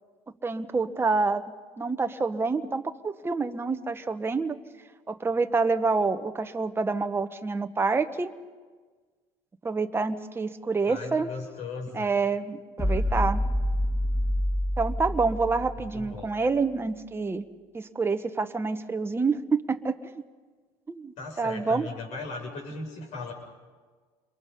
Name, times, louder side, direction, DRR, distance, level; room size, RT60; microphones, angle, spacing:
voice 1, 0.4-1.4 1.8-4.6 5.1-8.3 9.6-11.3 11.9-13.4 14.8-17.5 17.7-20.2 20.9-21.9, right 4 dB, 15° right, 7 dB, 1.2 m, -27 dB
voice 2, 10.9-12.1 15.9-16.3 21.2-23.3, left 3 dB, 60° left, 2 dB, 7.3 m, -37 dB
sound 1, 12.8-16.2, equal, 20° left, 6.5 m, -27 dB
29.0 x 22.5 x 5.6 m, 1.4 s
supercardioid pair, 95°, 13 cm